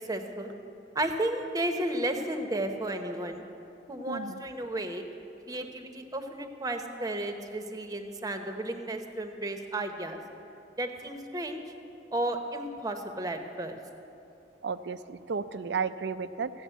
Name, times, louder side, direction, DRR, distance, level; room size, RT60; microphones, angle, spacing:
voice 1, 0.1-0.5 0.9-3.4 3.9-5.0 5.5-10.2 10.8-11.6 12.1-13.8, right 1 dB, 20° right, 5 dB, 0.9 m, -33 dB
voice 2, 4.1-4.4 5.6-5.7 14.6-16.5, right 5 dB, 70° right, 13 dB, 0.5 m, -33 dB
14.5 x 7.1 x 9.1 m, 2.8 s
head